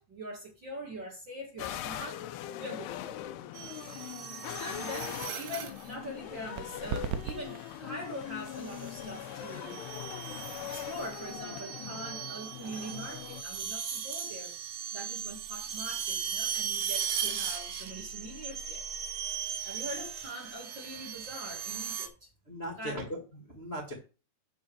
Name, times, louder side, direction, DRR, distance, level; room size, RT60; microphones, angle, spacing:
voice 1, 0.0-2.2 2.6-3.2 4.2-10.1 10.7-18.8 19.6-22.3 22.8-23.1, equal, 35° right, 2.1 m, -43 dB
sound 1, 1.6-13.4, left 13 dB, 85° left, 2.7 m, -41 dB
sound 2, 3.5-5.9 7.3-7.7 8.5-22.1, right 8 dB, 70° right, 3.7 m, -38 dB
sound 3, 6.4-13.8, right 8 dB, 90° right, 3.1 m, -43 dB
voice 2, 22.4-23.9, equal, 25° left, 1.4 m, -39 dB
11.5 x 4.4 x 7.1 m
omnidirectional pair, 4.8 m